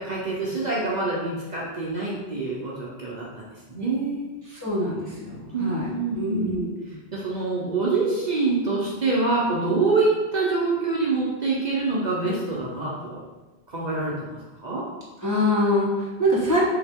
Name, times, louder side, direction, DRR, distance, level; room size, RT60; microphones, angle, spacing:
voice 1, 0.0-3.3 3.7-4.4 5.5-6.6 7.1-13.2 13.7-14.8, right 3 dB, 45° right, -5 dB, 0.7 m, -25 dB
voice 2, 4.5-5.9 6.2-6.7 15.2-16.6, left 1 dB, 20° left, -7 dB, 0.6 m, -24 dB
3.5 x 2.8 x 3.4 m, 1.2 s
omnidirectional pair, 1.2 m